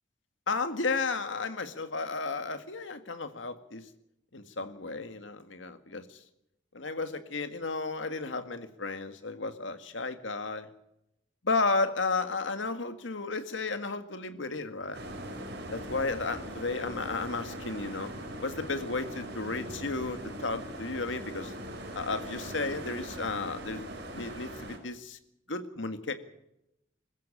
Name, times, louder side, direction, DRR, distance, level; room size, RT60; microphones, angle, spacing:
voice 1, 0.5-3.8 4.3-6.2 6.7-10.7 11.4-15.1 15.7-18.1 18.4-21.5 21.9-23.9 24.1-25.2 25.5-26.1, left 3 dB, 75° left, 9 dB, 1.9 m, -33 dB
sound 1, 14.9-24.8, right 1 dB, 55° right, 4.7 m, -41 dB
21.0 x 15.0 x 8.9 m, 0.83 s
head